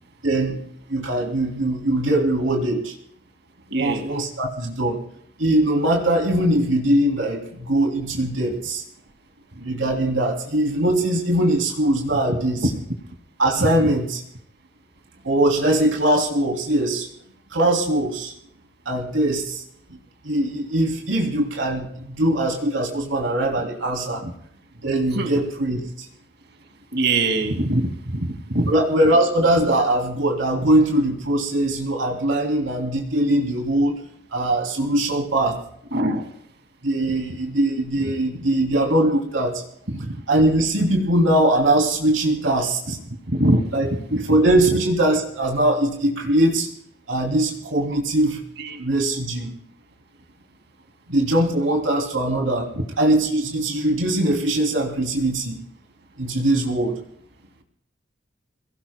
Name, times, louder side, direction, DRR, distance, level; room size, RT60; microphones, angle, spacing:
voice 1, 0.2-0.6 0.9-2.9 3.7-5.0 5.4-8.8 9.6-12.6 13.4-14.2 15.2-17.1 17.5-18.3 18.8-19.6 20.2-24.2 24.8-25.8 28.7-34.0 34.3-35.6 36.8-39.6 40.3-43.0 43.7-46.7 47.1-48.4 48.8-49.5 51.1-52.7 53.0-55.6 56.2-57.0, right 1 dB, 90° right, 0 dB, 2.9 m, -21 dB
voice 2, 3.7-4.1 12.3-12.7 13.6-13.9 24.2-24.3 25.1-25.3 26.9-28.7 35.9-36.3 37.3-37.4 38.0-38.4 39.9-40.2 42.9-43.0 43.3-44.4 44.7-44.8 47.9-48.0 48.6-48.8 52.7-52.9, right 1 dB, 60° right, 5 dB, 2.3 m, -24 dB
28.0 x 18.0 x 2.2 m, 0.70 s
head